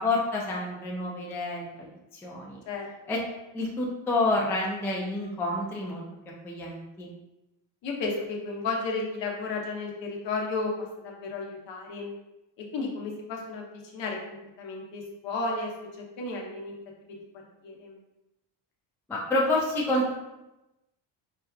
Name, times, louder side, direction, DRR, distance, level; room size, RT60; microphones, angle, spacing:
voice 1, 0.0-2.6 3.1-3.2 3.5-6.0 6.4-7.1 19.1-20.1, left 2 dB, 5° left, -3 dB, 0.3 m, -28 dB
voice 2, 7.8-10.7 11.0-12.1 12.7-16.7 17.6-18.0, left 3 dB, 65° left, -1 dB, 0.9 m, -33 dB
4.2 x 2.3 x 2.3 m, 0.97 s
cardioid pair, 110°, 49 cm